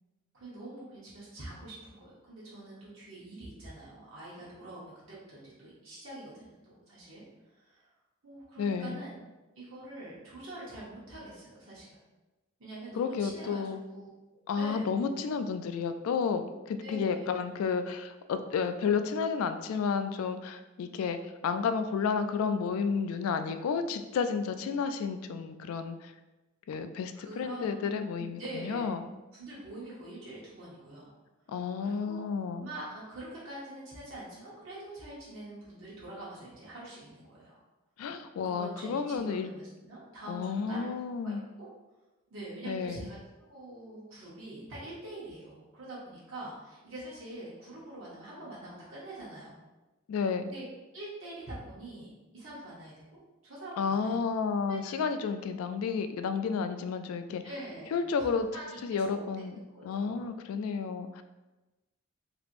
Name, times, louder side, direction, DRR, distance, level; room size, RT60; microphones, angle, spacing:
voice 1, 0.3-7.2 7.5-7.9 8.2-9.2 9.6-12.0 12.6-13.6 13.9-14.1 14.6-14.8 16.8-17.4 27.1-28.9 29.3-31.1 31.8-32.2 32.6-37.6 38.4-40.9 41.2-41.7 42.3-49.5 50.5-50.6 50.9-52.1 52.3-54.1 54.7-54.8 57.4-57.9 58.2-59.5 59.7-60.4, right 1 dB, 65° right, -8 dB, 0.9 m, -45 dB
voice 2, 8.6-9.0 13.0-13.8 14.5-26.1 26.7-29.1 31.5-32.7 38.0-39.5 40.3-41.4 42.6-43.1 50.1-50.5 53.8-57.4 57.9-58.5 58.8-61.2, left 5 dB, 85° left, 12 dB, 0.3 m, -31 dB
3.3 x 2.9 x 2.5 m, 1.1 s
head